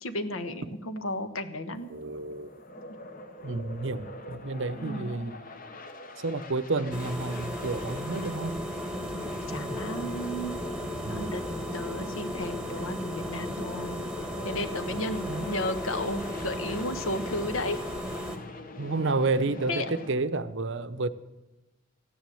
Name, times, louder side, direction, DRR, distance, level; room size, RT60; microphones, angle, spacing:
voice 1, 0.0-1.9 4.8-5.1 9.1-10.6 11.1-11.4 11.7-14.0 14.4-17.8 19.7-19.8, left 1 dB, 65° left, 10 dB, 1.2 m, -33 dB
sound 1, 1.7-20.1, left 2 dB, 40° left, 1.1 m, -44 dB
voice 2, 1.9-2.5 3.4-5.4 6.2-8.6 9.5-10.1 11.0-11.4 15.3-15.5 18.8-21.1, right 3 dB, 55° right, 12 dB, 0.7 m, -31 dB
sound 2, 6.9-18.4, equal, 5° right, 1.3 m, -35 dB
14.5 x 10.5 x 7.7 m, 1.0 s
head